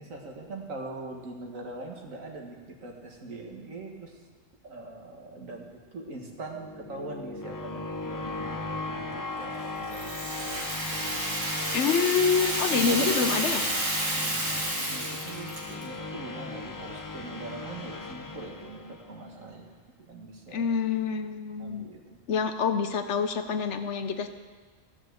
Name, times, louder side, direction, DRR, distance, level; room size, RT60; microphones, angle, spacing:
voice 1, 0.0-4.2 4.6-11.3 12.7-13.1 14.0-19.7 20.1-20.7 21.6-22.2, right 2 dB, 85° right, 1 dB, 2.0 m, -42 dB
sound 1, 6.3-19.3, left 3 dB, 30° left, 0.3 m, -37 dB
Rattle (instrument), 9.9-15.9, right 1 dB, 70° right, 2.3 m, -30 dB
voice 2, 11.7-13.6 20.5-21.8 22.3-24.3, left 6 dB, 65° left, 8 dB, 1.0 m, -26 dB
14.0 x 6.0 x 7.9 m, 1.4 s
omnidirectional pair, 1.3 m